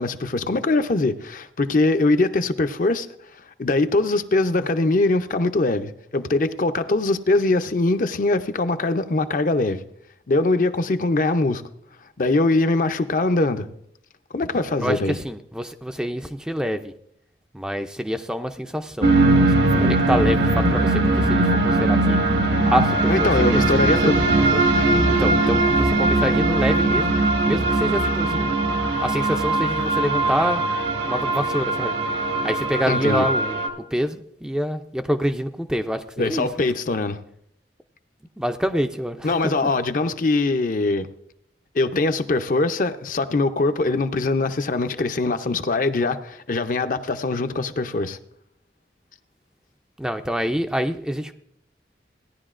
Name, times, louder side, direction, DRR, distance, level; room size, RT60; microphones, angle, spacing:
voice 1, 0.0-3.1 3.6-9.8 10.3-11.6 12.2-13.7 14.3-15.2 23.1-24.2 32.9-33.3 36.2-37.2 39.2-41.1 41.7-48.2, left 2 dB, 50° left, 0.5 m, -22 dB
voice 2, 14.8-16.9 17.5-22.2 22.7-24.2 24.5-24.6 25.1-27.2 27.5-28.6 29.0-30.6 31.0-32.0 32.4-36.7 38.4-39.4 39.6-39.7 50.0-51.3, equal, 5° right, 0.4 m, -26 dB
sound 1, 19.0-33.7, right 2 dB, 75° right, 1.6 m, -20 dB
16.5 x 10.5 x 2.5 m
head